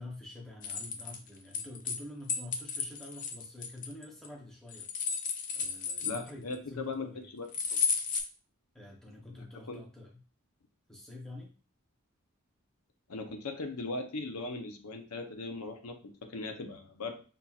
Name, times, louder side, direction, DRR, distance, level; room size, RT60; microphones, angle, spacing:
voice 1, 0.0-4.9 5.5-7.3 8.7-10.2 10.9-11.5, left 2 dB, ahead, -3 dB, 0.8 m, -47 dB
sound 1, 0.6-2.0 2.3-4.3 4.7-6.5 7.5-8.2, left 6 dB, 35° left, 0.4 m, -33 dB
voice 2, 6.0-7.8 9.4-9.8 13.1-17.2, left 3 dB, 85° left, 6 dB, 0.7 m, -39 dB
5.6 x 2.6 x 2.4 m, 0.37 s
head